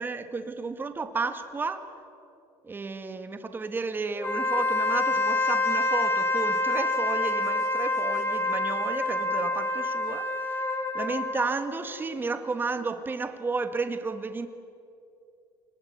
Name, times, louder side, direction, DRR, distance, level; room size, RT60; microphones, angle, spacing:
voice 1, 0.0-1.9 2.6-10.3 10.9-14.5, right 4 dB, 20° right, 8 dB, 1.8 m, -32 dB
Wind instrument woodwind instrument, 4.2-11.6, left 2 dB, 25° left, 3.1 m, -27 dB
27.5 x 19.5 x 9.5 m, 2.7 s
cardioid pair, 115°, 10 cm